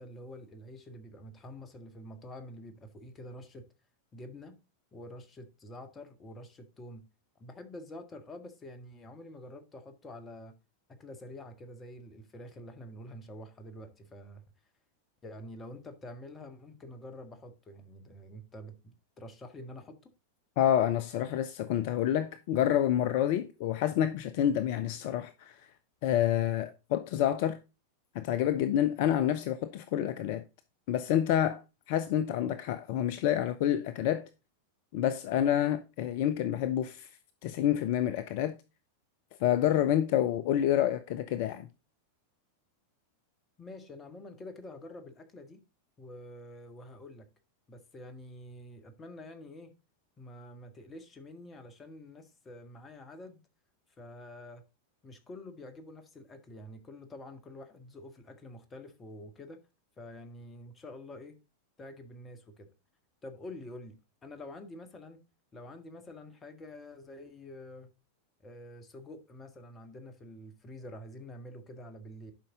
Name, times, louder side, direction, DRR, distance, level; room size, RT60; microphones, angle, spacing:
voice 1, 0.0-3.6 4.1-4.6 4.9-7.0 7.4-10.5 10.9-14.4 15.2-20.1 43.6-45.6 46.0-47.3 47.7-49.7 50.2-53.4 54.0-54.6 55.0-59.6 60.0-61.4 61.8-62.7 63.2-65.2 65.5-67.9 68.4-72.3, left 1 dB, 20° left, 1.8 m, -47 dB
voice 2, 20.6-25.7 26.0-27.6 28.1-30.4 30.9-31.6 31.9-34.3 34.9-37.1 37.4-38.6 39.4-41.7, left 11 dB, 50° left, 0.6 m, -28 dB
11.5 x 5.5 x 3.9 m
figure-of-eight pair, 90°, 0 cm